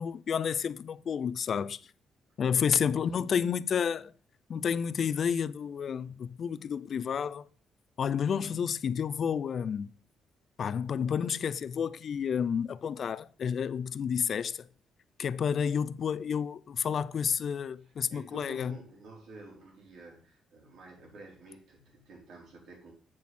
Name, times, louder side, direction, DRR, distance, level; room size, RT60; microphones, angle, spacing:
voice 1, 0.0-1.8 2.4-4.1 4.5-7.5 8.0-9.9 10.6-14.7 15.2-18.7, left 7 dB, 50° left, 0.4 m, -30 dB
voice 2, 17.8-22.9, right 2 dB, 70° right, 3.9 m, -51 dB
7.8 x 7.2 x 4.3 m
cardioid pair, 125°, 0 cm